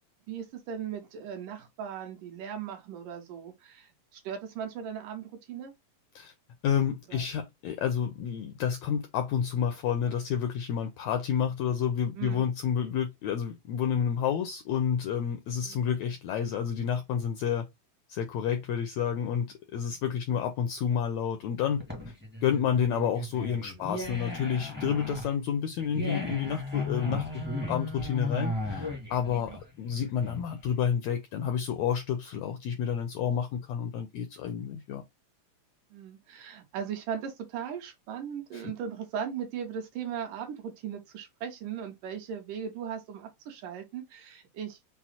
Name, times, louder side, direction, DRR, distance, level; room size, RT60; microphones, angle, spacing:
voice 1, 0.3-5.7 7.1-7.2 11.3-11.5 12.2-12.5 15.6-15.8 23.7-24.0 29.3-29.6 33.5-33.6 35.9-44.9, right 8 dB, 80° right, 2.6 m, -38 dB
voice 2, 6.6-17.7 18.1-19.5 19.7-21.8 22.4-35.0 38.5-38.7, left 8 dB, 80° left, 1.6 m, -30 dB
sound 1, 21.6-30.7, left 2 dB, 15° right, 0.4 m, -36 dB
6.0 x 2.0 x 4.1 m
omnidirectional pair, 3.8 m